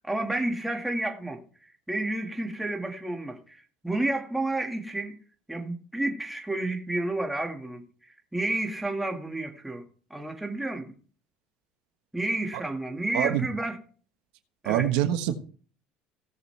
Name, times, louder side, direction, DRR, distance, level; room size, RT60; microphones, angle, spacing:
voice 1, 0.0-5.1 5.5-10.9 12.1-13.8 14.6-14.9, right 2 dB, 5° right, 1.8 m, -31 dB
voice 2, 13.1-13.5 14.6-15.3, right 12 dB, 85° right, 1.3 m, -25 dB
17.0 x 6.7 x 3.3 m
cardioid pair, 130°, 3 cm